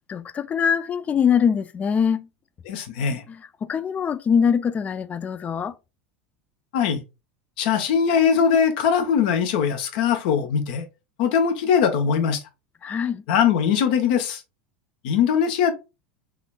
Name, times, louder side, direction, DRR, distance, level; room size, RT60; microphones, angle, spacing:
voice 1, 0.1-2.3 3.3-5.7 12.8-13.2, left 7 dB, 25° left, 0.3 m, -23 dB
voice 2, 2.7-3.2 6.7-7.0 7.6-10.9 11.2-12.4 13.3-14.4 15.0-15.7, left 7 dB, 65° left, 0.8 m, -21 dB
3.6 x 3.2 x 2.2 m
hypercardioid pair, 90°, 5 cm